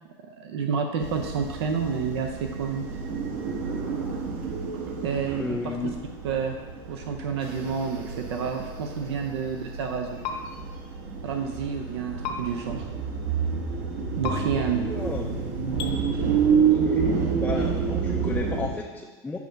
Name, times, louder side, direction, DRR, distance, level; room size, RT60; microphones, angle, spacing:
voice 1, 0.3-2.9 5.0-5.6 6.2-6.6 6.9-10.2 11.2-12.9 14.0-14.8, right 6 dB, 90° right, 4 dB, 0.6 m, -29 dB
sound 1, 1.0-18.7, right 6 dB, 65° right, 1.0 m, -29 dB
voice 2, 5.4-6.0 14.5-15.3 16.5-19.4, left 3 dB, 10° left, 1 dB, 0.4 m, -33 dB
sound 2, 10.2-10.4 12.2-12.4 14.2-14.4 15.8-15.9, left 7 dB, 50° left, 0.8 m, -31 dB
7.1 x 2.6 x 5.6 m, 1.3 s
supercardioid pair, 125°, 13 cm